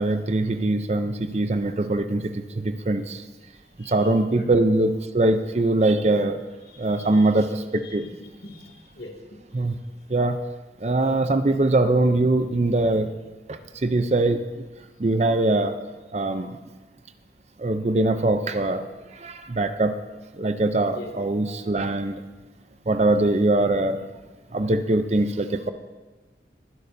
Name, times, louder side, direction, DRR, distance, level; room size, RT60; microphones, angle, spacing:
voice 1, 0.0-3.2 3.8-6.4 6.8-8.1 9.5-9.7 10.1-10.4 10.8-13.1 13.5-14.5 15.0-15.8 16.1-16.6 17.6-18.8 19.2-20.0 20.4-22.2 22.9-24.0 24.5-25.7, right 2 dB, 40° right, 9 dB, 0.5 m, -22 dB
voice 2, 3.8-4.5 6.7-7.3 7.8-9.4 20.9-21.1, left 2 dB, 70° left, -1 dB, 2.3 m, -43 dB
21.5 x 11.0 x 2.7 m, 1.2 s
head